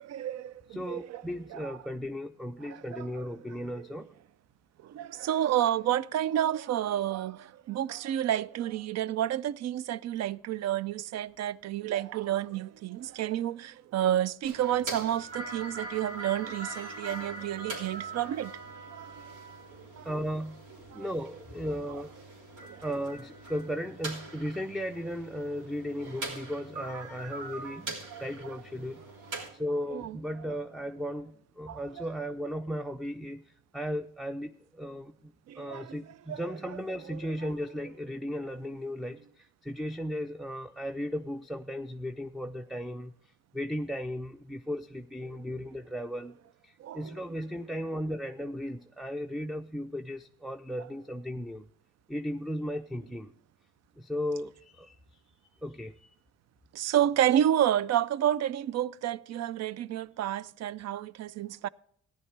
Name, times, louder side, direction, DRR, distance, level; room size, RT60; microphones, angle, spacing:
voice 1, 0.0-1.2 1.5-1.7 2.7-3.1 4.8-18.5 18.9-19.2 20.0-20.1 20.9-21.0 22.7-22.8 28.1-28.2 29.3-29.5 29.9-30.2 31.7-32.1 35.5-36.0 36.3-36.4 37.1-37.2 46.8-47.1 56.7-61.7, right 11 dB, 60° right, 0.4 m, -30 dB
voice 2, 0.7-4.1 20.0-22.1 22.8-29.0 29.5-46.3 46.6-51.7 52.1-53.3 54.0-55.0 55.3-55.4 55.6-56.1, equal, ahead, 0.4 m, -36 dB
sound 1, 14.4-29.5, right 2 dB, 80° right, 3.4 m, -42 dB
14.0 x 10.5 x 3.3 m
cardioid pair, 90°, 30 cm